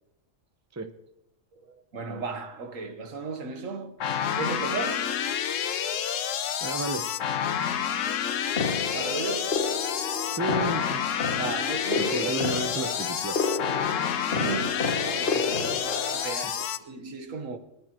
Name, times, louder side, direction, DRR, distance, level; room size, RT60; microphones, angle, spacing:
voice 1, 1.5-3.9 4.3-5.2 8.9-9.8 11.4-12.3 14.3-17.6, right 4 dB, 75° right, 1.6 m, -35 dB
sound 1, 4.0-16.8, left 8 dB, 70° left, 1.1 m, -29 dB
voice 2, 6.6-7.0 10.4-11.0 12.0-13.4, right 3 dB, 15° right, 0.7 m, -32 dB
sound 2, 8.6-16.2, left 4 dB, 45° left, 1.1 m, -31 dB
23.0 x 11.0 x 3.0 m
omnidirectional pair, 1.4 m